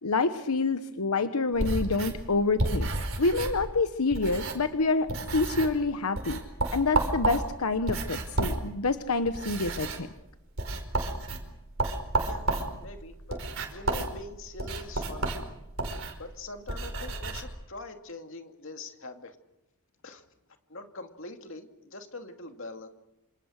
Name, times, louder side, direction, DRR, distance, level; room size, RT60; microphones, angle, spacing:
voice 1, 0.0-2.9 3.2-6.4 6.7-10.1, left 3 dB, 90° left, 9 dB, 1.1 m, -27 dB
sound 1, 1.5-4.8 5.1-5.8 6.2-17.4, right 2 dB, 60° right, 4.9 m, -32 dB
voice 2, 12.8-13.4 13.7-15.3 16.2-19.4 20.0-20.2 20.7-22.9, left 2 dB, 60° left, 5 dB, 2.5 m, -43 dB
27.5 x 26.5 x 6.5 m, 0.91 s
head